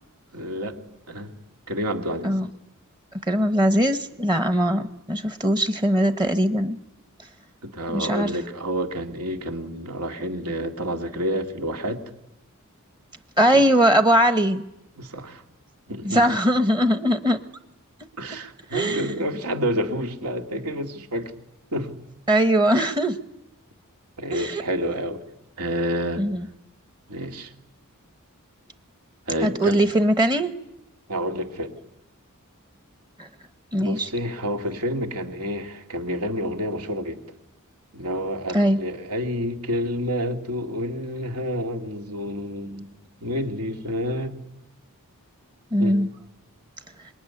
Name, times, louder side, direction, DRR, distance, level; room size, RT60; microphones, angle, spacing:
voice 1, 0.3-0.8 1.1-1.3 1.7-2.3 7.6-12.0 15.0-15.4 15.9-16.2 18.2-21.3 21.7-22.0 24.2-25.2 25.6-26.3 27.1-27.5 29.3-29.8 31.1-31.8 33.8-37.2 37.9-42.9 43.2-44.4 45.8-46.1, equal, 85° right, 4 dB, 2.6 m, -29 dB
voice 2, 3.3-6.8 7.9-8.4 13.4-14.6 16.0-17.4 18.7-19.1 22.3-23.2 24.3-24.6 26.2-26.4 29.4-30.5 33.2-33.3 33.7-34.1 38.5-38.8 45.7-46.1, equal, 20° right, 9 dB, 1.0 m, -20 dB
26.5 x 22.0 x 9.7 m, 0.88 s
head